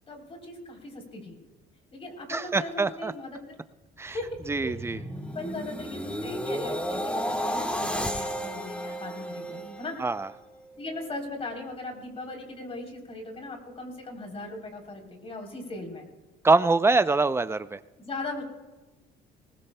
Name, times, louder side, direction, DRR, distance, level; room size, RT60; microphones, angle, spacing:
voice 1, 0.1-1.4 1.9-3.6 4.1-5.0 5.3-10.0 10.8-16.1 18.0-18.4, left 2 dB, 35° left, 3 dB, 3.5 m, -38 dB
voice 2, 2.3-3.1 4.0-4.1 4.5-5.0 10.0-10.3 16.4-17.8, right 3 dB, 15° right, 13 dB, 0.5 m, -24 dB
sound 1, 4.1-10.3 10.8-11.0, equal, 5° left, 1.6 m, -33 dB
20.0 x 19.5 x 2.2 m, 1.2 s
cardioid pair, 110°, 17 cm